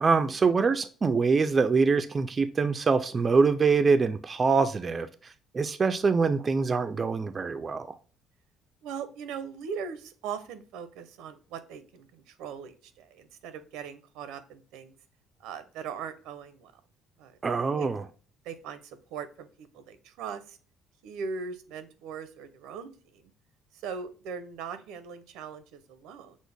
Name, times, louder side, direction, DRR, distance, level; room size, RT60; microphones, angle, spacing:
voice 1, 0.0-5.1 5.5-7.9 17.4-18.0, right 4 dB, 25° right, 0.3 m, -24 dB
voice 2, 8.8-14.9 15.4-16.7 17.2-17.4 17.8-17.9 18.4-20.6 21.0-23.3 23.7-26.4, right 6 dB, 90° right, 0.6 m, -40 dB
6.2 x 2.1 x 3.4 m
cardioid pair, 150°, 0 cm